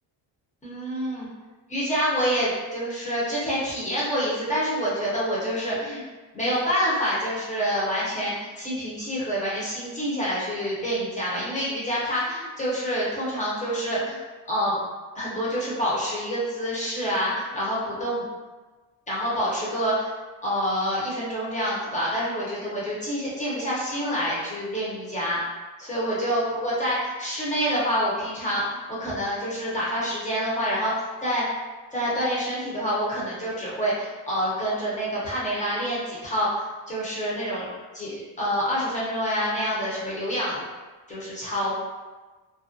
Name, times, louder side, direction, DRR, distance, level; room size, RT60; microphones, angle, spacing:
voice 1, 0.6-1.3 1.7-6.0 6.3-14.2 14.5-14.8 15.1-18.2 19.1-20.1 20.4-25.4 25.8-31.5 31.9-37.7 37.9-40.6 41.1-41.7, equal, 15° left, -7 dB, 0.6 m, -27 dB
2.5 x 2.1 x 2.5 m, 1.3 s
cardioid pair, 150°, 50 cm